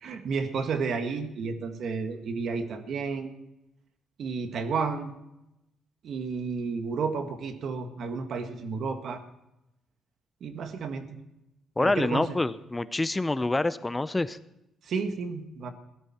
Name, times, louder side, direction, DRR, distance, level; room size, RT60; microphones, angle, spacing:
voice 1, 0.0-3.3 4.2-5.1 6.0-9.2 10.4-11.2 11.8-12.4 14.9-15.7, right 5 dB, 65° right, 7 dB, 1.7 m, -32 dB
voice 2, 11.8-14.4, left 2 dB, 15° left, 15 dB, 0.6 m, -27 dB
16.5 x 12.5 x 4.3 m, 0.87 s
cardioid pair, 90°, 0 cm